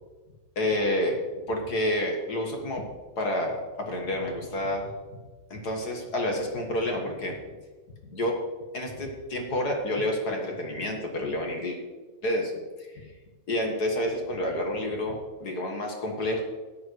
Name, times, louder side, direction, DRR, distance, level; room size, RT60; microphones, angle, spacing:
voice 1, 0.5-1.2 1.5-2.8 3.2-4.9 5.5-7.3 8.1-8.3 8.7-11.8 12.2-12.5 12.8-13.1 13.5-16.4, left 1 dB, 40° left, 1 dB, 1.5 m, -29 dB
14.0 x 10.5 x 3.2 m, 1.3 s
omnidirectional pair, 3.5 m